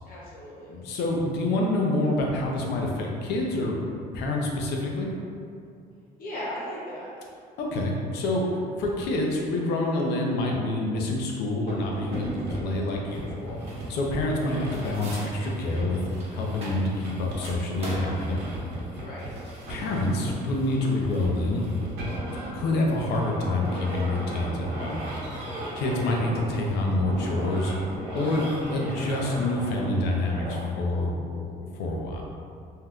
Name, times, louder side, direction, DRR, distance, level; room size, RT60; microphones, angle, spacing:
voice 1, 0.0-0.8 6.2-7.1 19.0-19.3, equal, 55° left, -7 dB, 1.1 m, -37 dB
voice 2, 0.7-3.8 4.1-5.1 7.6-12.3 12.6-13.6 13.9-16.0 16.3-18.7 19.7-21.7 22.5-25.0 25.7-27.7 28.1-32.2, left 2 dB, 80° left, 0 dB, 0.6 m, -27 dB
sound 1, 11.7-30.6, right 1 dB, 90° right, 0.8 m, -36 dB
sound 2, 12.1-12.5 13.2-14.1 14.4-17.1 17.4-29.7, right 1 dB, 35° right, 0.9 m, -44 dB
2.7 x 2.3 x 3.5 m, 2.4 s
cardioid pair, 110°, 17 cm